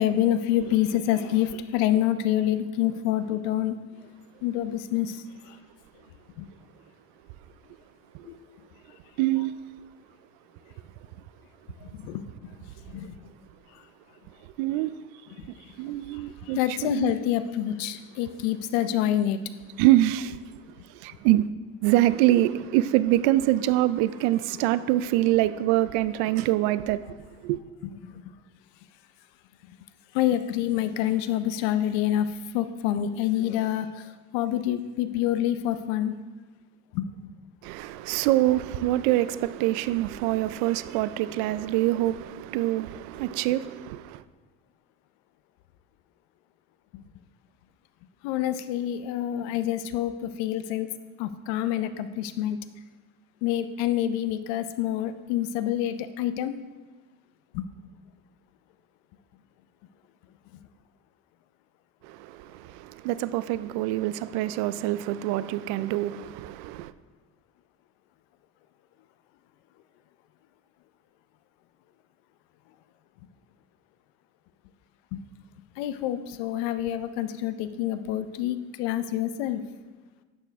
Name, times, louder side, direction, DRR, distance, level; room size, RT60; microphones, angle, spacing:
voice 1, 0.0-3.8 4.4-5.6 6.4-6.5 8.2-8.4 11.8-12.5 12.9-13.2 13.7-13.8 15.4-15.7 16.1-19.4 28.0-28.2 30.1-36.1 36.9-37.1 46.9-47.0 48.2-50.9 51.2-52.6 53.4-56.5 57.5-57.7 75.1-75.2 75.8-79.6, left 12 dB, 90° left, 0.7 m, -27 dB
voice 2, 9.2-9.5 14.6-14.9 15.8-17.1 19.8-20.4 20.9-21.5 21.8-27.1 27.4-27.6 37.6-44.2 62.0-66.9, right 15 dB, 75° right, 0.4 m, -25 dB
11.0 x 6.8 x 3.5 m
cardioid pair, 165°, 29 cm